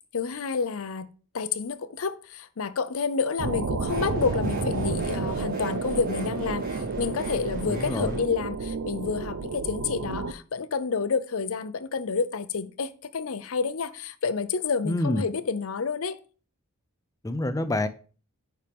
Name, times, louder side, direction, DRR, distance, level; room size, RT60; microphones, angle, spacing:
voice 1, 0.1-1.1 1.3-16.2, left 5 dB, 70° left, 0.6 m, -29 dB
sound 1, 3.4-10.3, right 4 dB, 70° right, 0.6 m, -31 dB
sound 2, 3.8-8.2, equal, 40° right, 2.0 m, -38 dB
voice 2, 7.7-8.2 14.8-15.2 17.2-17.9, left 1 dB, 15° left, 0.5 m, -27 dB
9.9 x 4.4 x 3.5 m
head